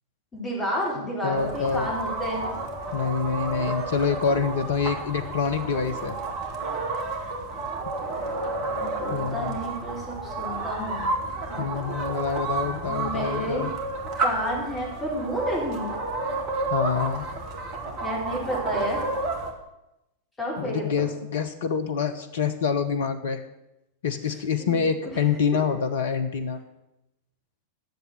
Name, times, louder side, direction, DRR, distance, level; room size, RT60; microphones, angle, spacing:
voice 1, 0.3-2.5 8.7-11.1 12.9-13.7 14.2-15.9 18.0-19.0 20.4-21.1 24.6-24.8, equal, 15° left, -3 dB, 4.5 m, -30 dB
voice 2, 1.0-1.9 2.9-6.2 9.1-9.6 11.6-13.7 16.7-17.2 20.6-23.4 24.0-26.6, left 6 dB, 60° left, 9 dB, 0.9 m, -26 dB
sound 1, 1.3-19.5, right 3 dB, 40° right, 2.0 m, -31 dB
10.5 x 7.2 x 7.9 m, 0.90 s
figure-of-eight pair, 90°, 0 cm